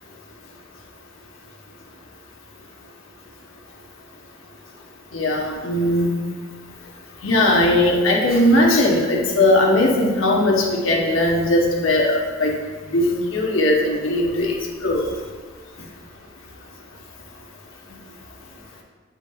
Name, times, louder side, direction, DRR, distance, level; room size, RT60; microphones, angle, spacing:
voice 1, 5.1-6.1 7.2-12.5 12.9-14.5 14.8-15.1, left 1 dB, 80° left, -1 dB, 1.0 m, -18 dB
8.2 x 5.6 x 2.4 m, 1.5 s
head